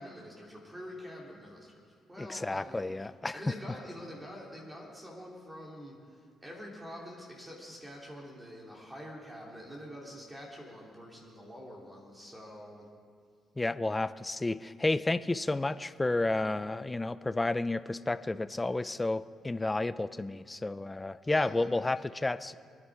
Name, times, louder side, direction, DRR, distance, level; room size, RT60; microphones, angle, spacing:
voice 1, 0.0-1.8 2.1-12.9 21.2-21.7, equal, 10° right, -3 dB, 3.2 m, -46 dB
voice 2, 2.2-3.5 13.6-22.5, left 2 dB, 15° left, 14 dB, 0.5 m, -31 dB
25.0 x 9.9 x 4.9 m, 2.1 s
cardioid pair, 90°, 0 cm